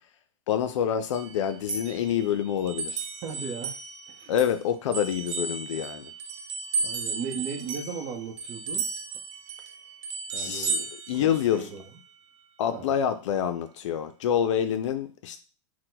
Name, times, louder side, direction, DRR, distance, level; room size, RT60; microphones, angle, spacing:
voice 1, 0.5-3.0 4.3-6.1 10.4-11.7 12.6-15.4, left 9 dB, 80° left, 10 dB, 0.4 m, -27 dB
sound 1, 1.1-4.6 4.9-11.8, right 4 dB, 80° right, 0.8 m, -34 dB
voice 2, 3.2-3.7 4.2-4.3 6.8-8.8 10.3-10.9 11.2-11.8 12.7-12.9, right 6 dB, 40° right, -2 dB, 0.7 m, -36 dB
4.4 x 2.1 x 3.9 m, 0.36 s
supercardioid pair, 140°, 15 cm